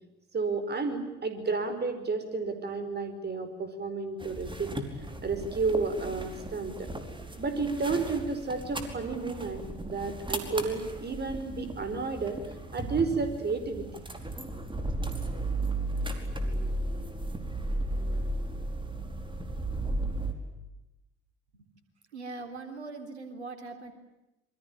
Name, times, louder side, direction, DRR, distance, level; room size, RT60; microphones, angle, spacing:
voice 1, 0.3-4.7 5.2-6.9 7.4-12.4 12.7-14.0, right 4 dB, 30° right, 9 dB, 4.9 m, -31 dB
sound 1, 4.2-20.3, right 2 dB, 15° right, 4.9 m, -35 dB
voice 2, 22.1-23.9, right 3 dB, 80° right, 7 dB, 3.6 m, -41 dB
27.5 x 24.5 x 8.8 m, 0.96 s
figure-of-eight pair, 55°, 33 cm